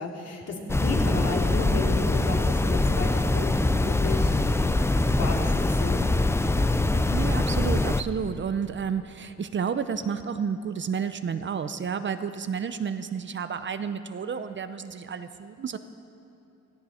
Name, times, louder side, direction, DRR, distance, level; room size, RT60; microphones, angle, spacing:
voice 1, 0.0-4.4 5.0-6.0, left 2 dB, 55° left, -1 dB, 2.9 m, -33 dB
sound 1, 0.7-8.0, left 2 dB, 10° left, 0.5 m, -23 dB
voice 2, 6.5-15.8, right 7 dB, 40° right, 10 dB, 0.7 m, -31 dB
17.0 x 15.0 x 4.3 m, 2.7 s
cardioid pair, 90°, 30 cm